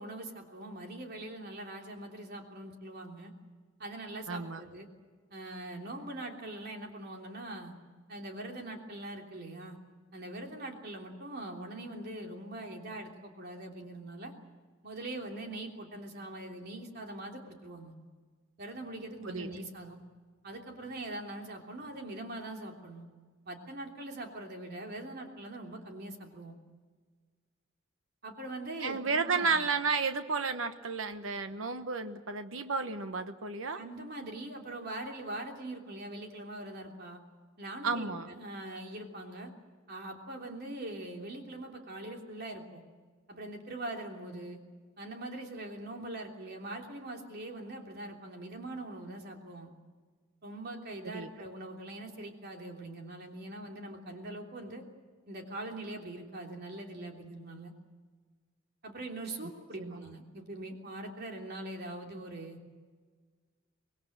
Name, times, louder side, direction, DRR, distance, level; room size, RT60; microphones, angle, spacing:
voice 1, 0.0-3.3 3.8-4.9 5.3-7.7 8.1-9.8 10.1-14.3 14.8-17.9 18.6-20.0 20.4-23.1 23.4-26.5 28.2-29.6 33.7-37.2 37.6-39.5 39.9-42.8 43.3-44.6 45.0-49.7 50.4-54.8 55.3-57.7 58.8-62.6, right 1 dB, 55° right, 2 dB, 3.2 m, -42 dB
voice 2, 4.3-4.6 19.2-19.5 28.8-33.8 37.8-38.3 51.0-51.3 59.8-60.0, right 4 dB, 90° right, 9 dB, 1.1 m, -32 dB
25.5 x 19.5 x 7.9 m, 1.5 s
head